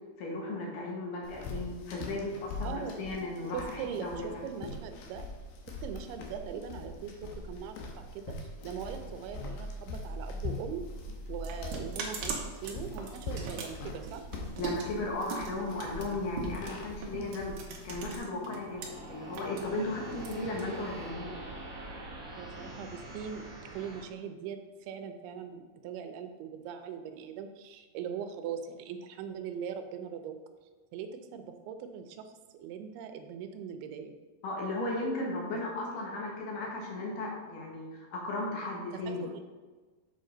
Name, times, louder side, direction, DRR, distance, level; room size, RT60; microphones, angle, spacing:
voice 1, 0.2-4.4 14.6-21.4 34.4-39.2, left 2 dB, 65° left, -2 dB, 2.5 m, -36 dB
sound 1, 1.2-18.2, left 2 dB, 85° left, 2.8 m, -42 dB
voice 2, 3.5-5.2 5.7-7.1 7.5-10.8 11.3-14.3 22.3-23.5 23.7-30.4 30.9-34.1 38.9-39.4, right 7 dB, 90° right, 7 dB, 2.6 m, -41 dB
sound 2, 10.7-18.9 19.2-21.1, right 4 dB, 75° right, 1.8 m, -40 dB
sound 3, 18.4-24.0, right 1 dB, 55° right, 1.5 m, -44 dB
7.1 x 5.2 x 3.8 m, 1.3 s
omnidirectional pair, 4.4 m